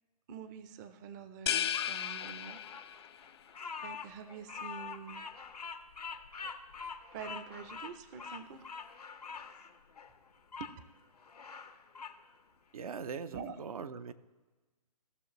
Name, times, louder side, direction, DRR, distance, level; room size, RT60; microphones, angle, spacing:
voice 1, 0.3-2.6 3.8-5.3 7.1-8.8 10.6-10.7 13.3-13.5, right 7 dB, 30° right, 11 dB, 0.6 m, -46 dB
sound 1, 1.5-3.2, left 10 dB, 40° left, 0.4 m, -34 dB
Bird vocalization bird call bird song, 1.7-10.7 11.2-12.2, left 5 dB, 80° left, 0.8 m, -45 dB
voice 2, 12.7-14.1, right 6 dB, 65° right, 10 dB, 0.7 m, -41 dB
17.0 x 6.3 x 3.1 m, 1.2 s
figure-of-eight pair, 130°, 20 cm